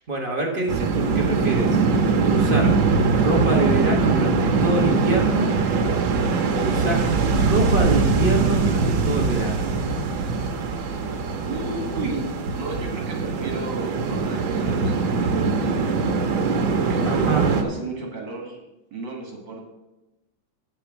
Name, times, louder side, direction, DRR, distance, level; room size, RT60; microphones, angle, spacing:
voice 1, 0.1-2.8 3.1-5.5 6.5-9.7 17.1-17.4, right 2 dB, 30° right, 1 dB, 1.1 m, -26 dB
sound 1, 0.7-17.6, right 4 dB, 80° right, 1.7 m, -22 dB
voice 2, 11.4-15.9 16.7-18.6 18.9-19.6, right 2 dB, 65° right, 1 dB, 2.6 m, -33 dB
8.0 x 6.8 x 6.0 m, 0.99 s
omnidirectional pair, 2.2 m